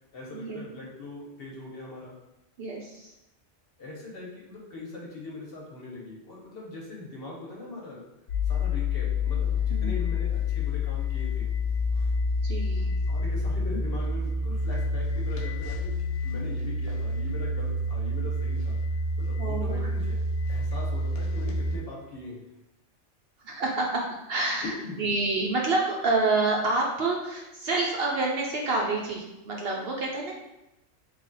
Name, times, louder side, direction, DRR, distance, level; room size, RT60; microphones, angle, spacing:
voice 1, 0.1-2.1 3.8-8.1 8.4-11.5 13.1-15.9 16.2-18.8 19.2-20.2 20.5-22.4 24.6-25.1, left 2 dB, 55° left, -3 dB, 1.0 m, -40 dB
voice 2, 2.6-3.1 9.7-9.9 12.4-12.9 19.4-19.9 23.4-24.7 25.0-30.3, right 3 dB, 60° right, -1 dB, 0.7 m, -28 dB
sound 1, 8.3-21.8, left 2 dB, 80° left, 1.0 m, -28 dB
3.2 x 2.3 x 3.9 m, 0.93 s
omnidirectional pair, 1.3 m